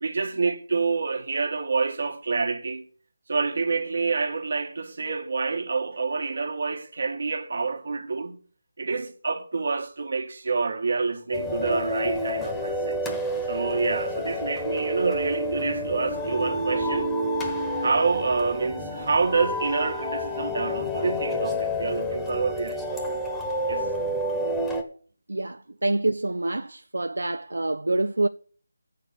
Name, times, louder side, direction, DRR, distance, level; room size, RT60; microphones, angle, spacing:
voice 1, 0.0-2.8 3.3-8.4 8.8-13.1 13.5-17.1 17.8-23.2 23.7-23.9, right 4 dB, 55° right, 1.7 m, -27 dB
sound 1, 11.3-24.8, equal, 5° left, 1.1 m, -29 dB
voice 2, 25.3-28.3, right 2 dB, 80° right, 0.5 m, -26 dB
8.4 x 6.6 x 7.6 m
figure-of-eight pair, 165°, 0 cm